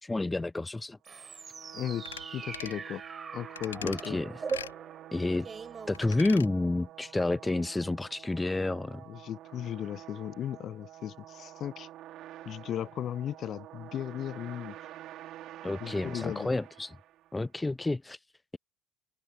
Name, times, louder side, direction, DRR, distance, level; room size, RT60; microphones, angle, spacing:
voice 1, 0.0-1.0 3.8-4.4 5.1-5.5 5.9-9.0 15.6-17.0 17.3-18.2, left 2 dB, 10° left, 0.4 m, -30 dB
sound 1, 1.0-6.7, right 5 dB, 25° right, 6.9 m, -41 dB
sound 2, 1.2-17.5, right 13 dB, 50° right, 4.3 m, -48 dB
voice 2, 1.7-2.0 2.3-3.0 3.3-4.2 9.1-11.9 12.5-14.8 15.8-16.5, left 11 dB, 45° left, 0.9 m, -36 dB
sound 3, 2.0-2.3 2.5-2.8 3.6-4.1 4.5-4.7 5.9-6.5 6.8-6.9, left 9 dB, 75° left, 3.4 m, -42 dB
open air
figure-of-eight pair, 60°, 0 cm